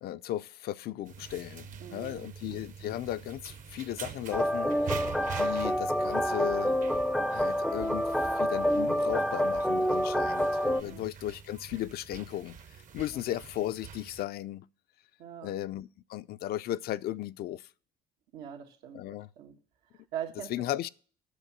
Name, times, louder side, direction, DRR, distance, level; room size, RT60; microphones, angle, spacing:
voice 1, 0.0-4.7 5.4-6.7 7.3-8.1 8.4-12.6 12.9-14.6 15.4-17.7 18.9-19.3 20.5-20.9, left 13 dB, 65° left, 0.5 m, -36 dB
sound 1, 1.1-14.2, right 7 dB, 50° right, 0.9 m, -45 dB
voice 2, 1.8-2.3 10.8-11.1 15.2-15.5 18.3-19.0 19.4-19.5 19.9-20.5, right 10 dB, 90° right, 1.7 m, -41 dB
sound 2, 4.3-10.8, equal, ahead, 0.5 m, -28 dB
8.3 x 6.9 x 7.2 m
cardioid pair, 110°, 17 cm